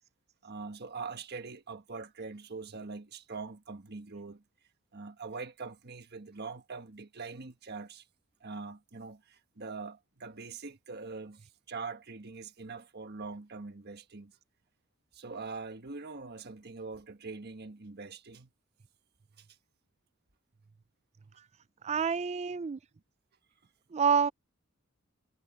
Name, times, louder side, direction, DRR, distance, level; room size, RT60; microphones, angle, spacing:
voice 1, 0.4-4.4 4.9-8.0 8.4-14.3 15.1-18.5 19.4-19.5, right 4 dB, 50° right, 1.4 m, -43 dB
voice 2, 21.8-22.8 23.9-24.3, right 6 dB, 30° right, 0.4 m, -27 dB
head